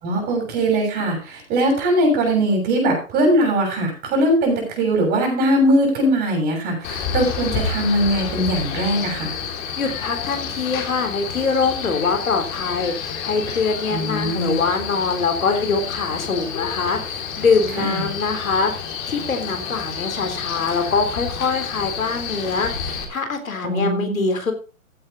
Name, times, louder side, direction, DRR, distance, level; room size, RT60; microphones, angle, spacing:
voice 1, 0.0-9.3 13.9-14.6 17.8-18.1 23.6-24.3, right 1 dB, 25° right, 1 dB, 7.0 m, -20 dB
Male speech man speaking, 6.8-23.0, left 6 dB, 35° left, 3.7 m, -29 dB
voice 2, 9.8-18.7 19.1-24.5, left 4 dB, 75° left, 6 dB, 3.6 m, -23 dB
15.5 x 8.6 x 4.1 m, 0.34 s
hypercardioid pair, 135°, 41 cm